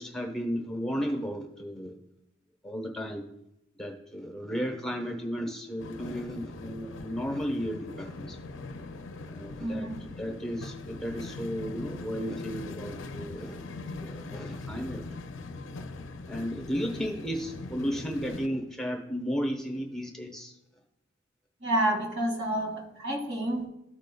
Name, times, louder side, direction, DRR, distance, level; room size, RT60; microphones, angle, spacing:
voice 1, 0.0-2.0 2.6-3.2 3.8-8.4 9.3-13.6 14.0-15.1 16.3-20.5, equal, 5° left, 1 dB, 1.0 m, -34 dB
sound 1, 5.8-18.5, left 3 dB, 70° left, 0.5 m, -41 dB
voice 2, 9.6-10.0 21.6-23.7, right 1 dB, 80° right, 0 dB, 2.0 m, -29 dB
14.0 x 5.1 x 2.3 m, 0.85 s
head